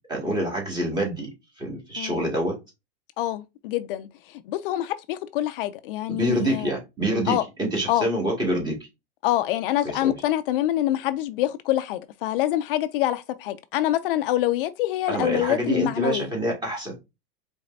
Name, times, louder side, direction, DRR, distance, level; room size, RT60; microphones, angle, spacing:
voice 1, 0.1-2.6 6.1-8.7 9.8-10.1 15.1-16.9, right 1 dB, 15° right, 2.0 m, -26 dB
voice 2, 3.2-6.7 7.3-7.4 7.9-8.1 9.2-16.3, left 14 dB, 60° left, 0.5 m, -26 dB
5.0 x 3.4 x 2.6 m
supercardioid pair, 145°, 31 cm